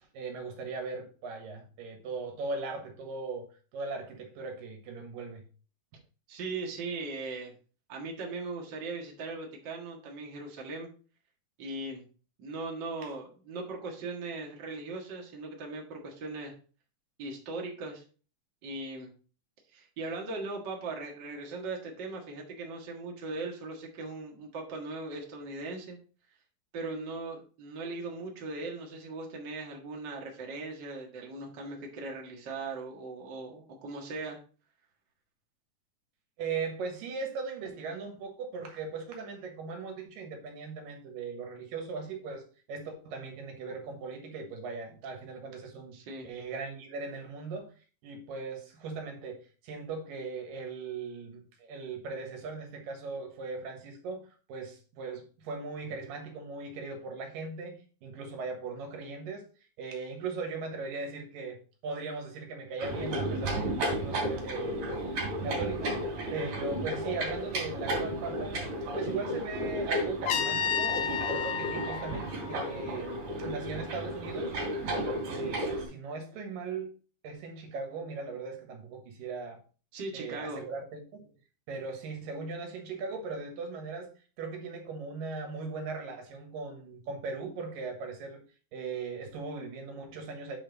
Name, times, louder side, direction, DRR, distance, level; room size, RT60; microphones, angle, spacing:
voice 1, 0.1-5.4 36.4-46.0 46.2-47.7 48.0-59.5 59.8-63.8 64.0-66.0 66.3-68.6 68.9-74.6 75.3-76.9 77.2-79.6 80.1-81.3 81.7-84.1 84.4-88.4 88.7-90.6, right 4 dB, 85° right, 3 dB, 3.1 m, -39 dB
voice 2, 6.3-7.5 7.9-10.9 11.6-12.0 12.4-16.5 17.2-18.0 18.6-19.1 19.7-26.0 26.7-34.4 45.9-46.3 79.9-80.6, right 3 dB, 40° right, 0 dB, 1.8 m, -39 dB
sound 1, 62.8-75.9, right 1 dB, 65° right, 3.6 m, -33 dB
Trumpet, 70.3-73.2, left 7 dB, 75° left, 2.1 m, -32 dB
8.9 x 4.4 x 4.0 m, 0.38 s
omnidirectional pair, 3.9 m